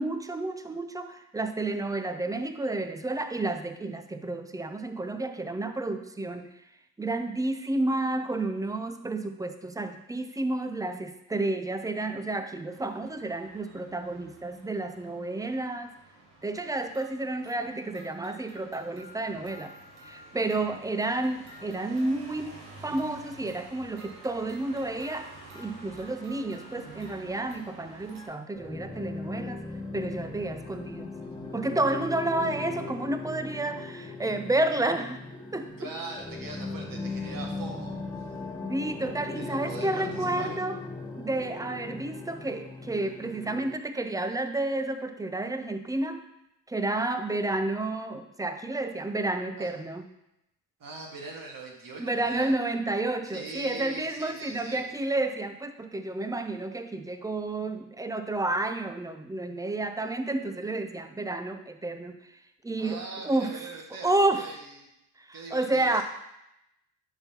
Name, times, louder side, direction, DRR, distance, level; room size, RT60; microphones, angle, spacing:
voice 1, 0.0-6.5 7.0-15.9 16.4-19.7 20.0-25.3 25.5-29.6 29.9-31.1 31.5-35.2 35.5-35.9 38.7-40.8 41.2-46.2 46.7-50.1 52.0-62.2 62.6-63.6 64.0-64.5 65.3-66.0, right 2 dB, 10° right, 9 dB, 0.5 m, -30 dB
sound 1, 12.7-28.3, right 2 dB, 70° right, 1.8 m, -49 dB
sound 2, 28.5-43.8, left 3 dB, 10° left, 1.3 m, -38 dB
voice 2, 31.2-31.5 35.8-38.0 39.3-40.6 49.6-49.7 50.8-52.6 53.3-54.8 62.8-64.9 65.3-66.0, right 3 dB, 45° right, 0 dB, 1.8 m, -41 dB
10.5 x 3.8 x 2.9 m, 0.84 s
hypercardioid pair, 50°, 49 cm